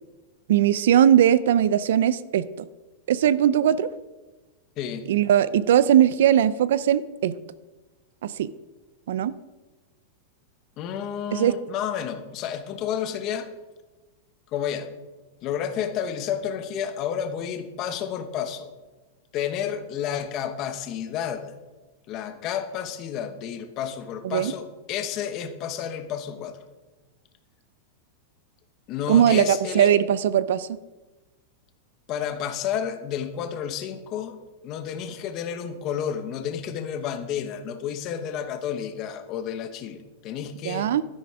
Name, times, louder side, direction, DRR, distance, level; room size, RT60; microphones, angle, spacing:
voice 1, 0.5-2.5 3.1-3.9 5.1-7.3 8.2-8.5 9.1-9.3 11.3-11.5 24.2-24.5 29.1-30.7 40.6-41.0, right 10 dB, 65° right, 17 dB, 0.5 m, -19 dB
voice 2, 4.8-5.1 10.8-13.5 14.5-14.9 15.4-18.7 19.3-21.6 22.1-26.6 28.9-29.9 32.1-34.4 34.6-40.9, left 8 dB, 25° left, 8 dB, 1.1 m, -31 dB
12.5 x 10.5 x 4.9 m, 1.2 s
supercardioid pair, 180°, 0 cm